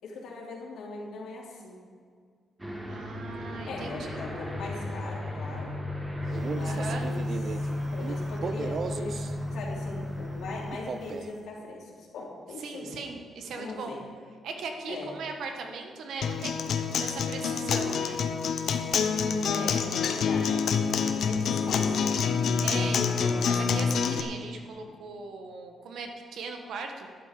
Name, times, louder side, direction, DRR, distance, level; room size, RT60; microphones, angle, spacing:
voice 1, 0.0-1.8 3.7-5.7 6.5-7.6 7.9-9.2 9.5-13.0 13.6-14.0 14.9-15.1 19.0-20.6 21.1-22.2, left 2 dB, 90° left, -3 dB, 3.5 m, -40 dB
Aircraft, 2.6-10.7, left 1 dB, 10° right, 1.6 m, -34 dB
voice 2, 2.9-4.2 6.6-7.1 12.6-13.9 14.4-16.7 17.0-18.2 22.6-27.1, right 4 dB, 70° right, 4 dB, 1.5 m, -39 dB
Male speech man speaking, 6.2-9.4 10.7-11.4, right 5 dB, 40° right, 0.5 m, -37 dB
Acoustic guitar, 16.2-24.2, left 6 dB, 60° left, 0.9 m, -27 dB
12.0 x 11.0 x 5.2 m, 2.1 s
wide cardioid pair, 165°, 0 cm